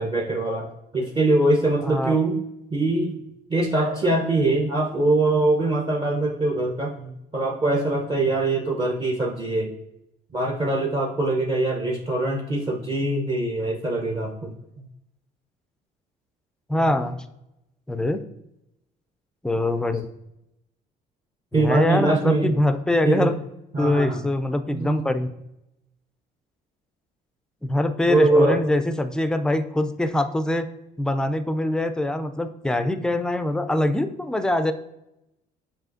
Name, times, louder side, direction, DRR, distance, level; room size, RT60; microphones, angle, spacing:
voice 1, 0.0-2.4 2.7-3.2 3.5-9.7 10.3-14.5 16.8-16.9 21.5-22.5 23.0-23.3 23.7-24.2 24.7-25.1 28.1-28.6, right 2 dB, 30° right, -1 dB, 0.7 m, -23 dB
voice 2, 1.8-2.2 16.7-17.2 17.9-18.2 19.4-20.1 21.5-23.4 23.8-25.3 27.6-30.7 31.0-34.7, left 1 dB, 5° left, 9 dB, 0.3 m, -23 dB
7.3 x 2.8 x 2.5 m, 0.86 s
cardioid pair, 110°, 17 cm